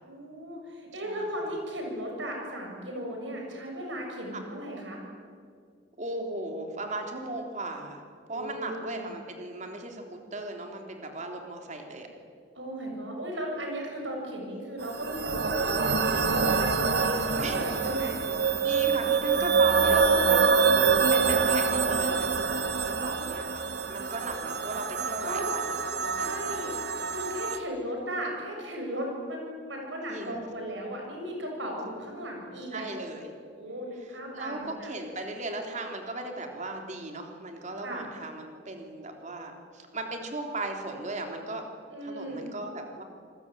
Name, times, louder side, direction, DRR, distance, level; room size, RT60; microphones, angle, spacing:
voice 1, 0.0-5.0 8.3-9.1 12.6-18.1 19.8-20.2 25.2-25.4 26.2-26.7 27.1-33.0 33.5-34.9 37.8-38.0 41.9-42.5, equal, 85° right, 1 dB, 6.9 m, -36 dB
voice 2, 1.0-1.5 4.3-4.4 6.0-8.0 8.3-12.1 17.3-17.6 18.6-22.3 22.9-25.8 26.0-26.3 30.1-30.4 32.7-33.3 34.0-41.6 42.0-43.0, right 2 dB, 40° right, 3 dB, 3.5 m, -37 dB
sound 1, 14.8-27.6, right 5 dB, 60° right, 1.5 m, -26 dB
27.0 x 20.5 x 9.2 m, 2.2 s
head